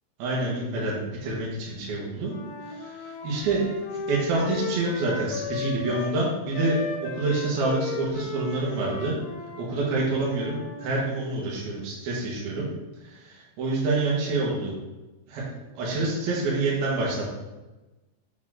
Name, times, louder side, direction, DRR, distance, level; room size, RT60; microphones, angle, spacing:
voice 1, 0.2-2.3 2.8-3.6 3.9-9.2 9.6-12.7 13.0-14.7 15.3-15.4 15.7-17.4, right 2 dB, 60° right, -5 dB, 2.9 m, -27 dB
Wind instrument woodwind instrument, 2.3-6.2 6.5-10.9, left 4 dB, 85° left, 2.2 m, -36 dB
7.2 x 5.7 x 3.7 m, 1.1 s
omnidirectional pair, 5.8 m